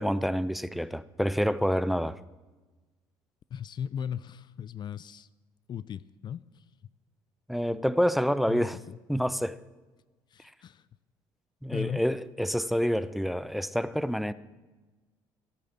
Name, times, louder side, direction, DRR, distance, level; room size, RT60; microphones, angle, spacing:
voice 1, 0.0-2.2 7.5-8.8 9.1-9.6 11.6-14.3, equal, ahead, 0.6 m, -27 dB
voice 2, 3.5-5.3 5.7-6.6 8.5-9.0 10.3-10.8 11.7-12.0, left 8 dB, 50° left, 0.4 m, -37 dB
16.0 x 8.5 x 7.4 m
supercardioid pair, 80°, 10 cm